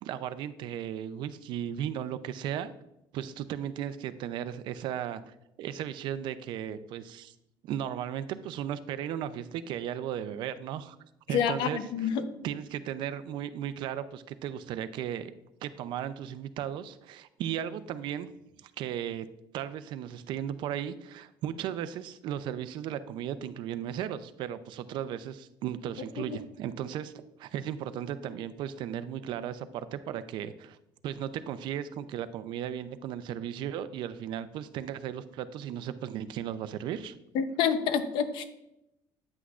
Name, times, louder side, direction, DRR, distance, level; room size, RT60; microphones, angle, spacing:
voice 1, 0.0-2.7 3.1-7.3 7.6-11.0 11.3-11.8 12.4-15.3 15.6-18.3 18.6-19.3 19.5-30.8 31.0-37.1, right 10 dB, 70° right, 0.5 m, -36 dB
voice 2, 11.3-12.3 26.2-26.4 37.3-38.4, left 7 dB, 75° left, 0.8 m, -28 dB
9.6 x 8.1 x 2.5 m
cardioid pair, 145°, 8 cm